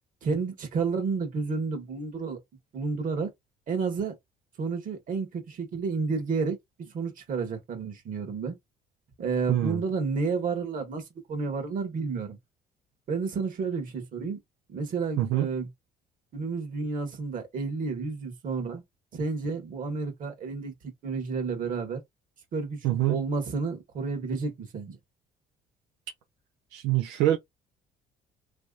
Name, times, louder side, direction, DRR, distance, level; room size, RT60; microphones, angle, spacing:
voice 1, 0.2-2.4 2.7-3.3 3.7-4.2 4.6-8.6 9.2-12.4 13.1-14.4 14.7-15.7 16.3-18.8 19.1-20.7 21.0-22.0 22.5-25.0, right 4 dB, 55° right, 1.7 m, -31 dB
voice 2, 9.5-9.8 15.2-15.5 22.8-23.2 26.7-27.4, right 14 dB, 90° right, 0.6 m, -25 dB
3.4 x 3.1 x 2.5 m
cardioid pair, 95°, 17 cm